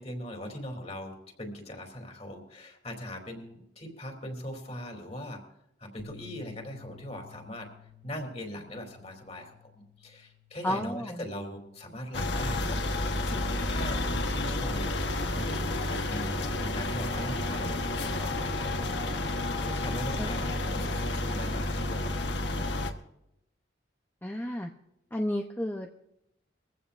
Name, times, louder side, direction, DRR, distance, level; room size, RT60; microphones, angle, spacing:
voice 1, 0.0-5.4 5.8-7.7 8.0-12.8 13.2-22.1, equal, 35° left, 3 dB, 3.2 m, -40 dB
sound 1, 6.0-12.2, left 6 dB, 55° left, 4.8 m, -54 dB
voice 2, 10.6-11.2 20.2-20.5 24.2-24.7 25.1-26.0, left 1 dB, 10° left, 2 dB, 0.7 m, -32 dB
sound 2, 12.1-22.9, left 2 dB, 75° left, 1.3 m, -30 dB
22.5 x 15.5 x 2.6 m, 0.81 s
head